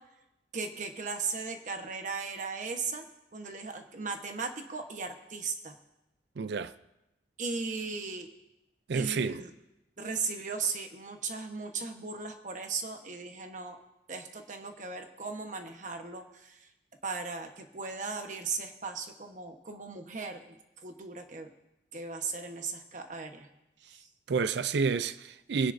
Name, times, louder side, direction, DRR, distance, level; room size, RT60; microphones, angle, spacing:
voice 1, 0.5-3.1 3.3-5.8 7.4-8.3 8.9-9.5 10.0-13.8 14.1-16.7 17.0-20.4 20.8-21.5 21.9-23.5 23.9-24.1, right 4 dB, 45° right, 1.1 m, -37 dB
voice 2, 6.4-6.7 8.9-9.4 24.3-25.7, right 5 dB, 70° right, 0.4 m, -29 dB
24.0 x 10.0 x 2.6 m
head